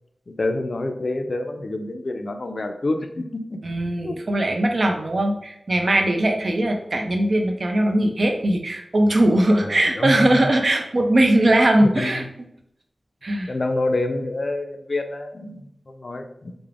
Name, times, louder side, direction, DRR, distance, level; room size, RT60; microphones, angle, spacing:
voice 1, 0.3-3.6 4.0-4.2 9.6-10.3 11.8-12.3 13.5-16.6, left 2 dB, 60° left, 6 dB, 0.3 m, -27 dB
voice 2, 3.6-12.2 13.2-13.5, right 1 dB, 60° right, 3 dB, 0.4 m, -20 dB
2.4 x 2.0 x 3.2 m, 0.75 s
wide cardioid pair, 60°, 0 cm